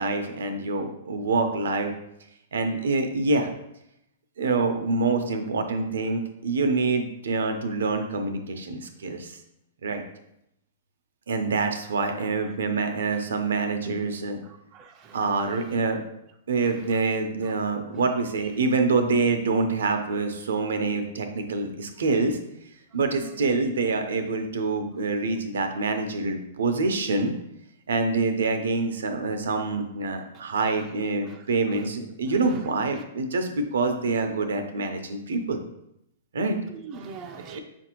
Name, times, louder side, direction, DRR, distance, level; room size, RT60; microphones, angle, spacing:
voice 1, 0.0-1.9 2.5-3.5 4.4-9.4 9.8-10.0 11.3-14.4 15.1-16.0 16.5-22.4 22.9-27.3 27.9-35.6 36.3-36.6 37.5-37.6, right 3 dB, 80° right, 6 dB, 0.5 m, -26 dB
voice 2, 14.4-15.7 17.4-17.5 23.2-23.5 30.3-30.4 31.3-31.4 31.7-31.8 32.4-32.6 36.7-37.6, right 5 dB, 30° right, 4 dB, 0.4 m, -43 dB
5.4 x 2.5 x 2.9 m, 0.80 s
hypercardioid pair, 130°, 0 cm